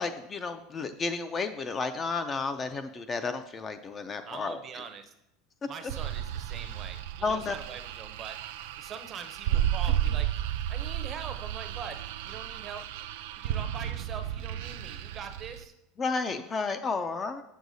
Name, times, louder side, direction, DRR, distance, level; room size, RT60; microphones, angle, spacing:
voice 1, 0.0-4.8 7.2-7.6 16.0-17.4, left 4 dB, 20° left, 9 dB, 0.3 m, -32 dB
voice 2, 4.2-5.1 5.7-8.4 8.8-10.3 10.7-12.8 13.3-15.7, right 6 dB, 30° right, 8 dB, 0.5 m, -43 dB
sound 1, 5.9-15.6, right 11 dB, 80° right, 0.3 m, -33 dB
7.0 x 6.3 x 2.6 m, 0.86 s
supercardioid pair, 150°, 0 cm